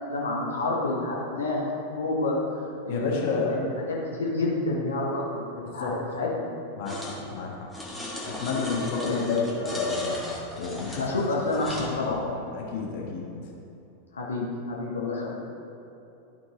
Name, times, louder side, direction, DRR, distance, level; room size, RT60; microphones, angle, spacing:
voice 1, 0.0-1.6 2.0-2.4 2.8-6.4 8.9-9.3 11.0-12.3 14.1-15.4, left 2 dB, 70° left, -4 dB, 1.1 m, -29 dB
voice 2, 2.9-3.6 5.8-5.9 6.8-7.7 8.3-10.2 10.6-11.2 12.0-13.3, left 5 dB, 50° left, -1 dB, 1.3 m, -30 dB
sound 1, 6.9-7.2 7.7-11.9, left 1 dB, ahead, 1.6 m, -36 dB
12.0 x 4.6 x 4.0 m, 2.8 s
figure-of-eight pair, 90°, 0 cm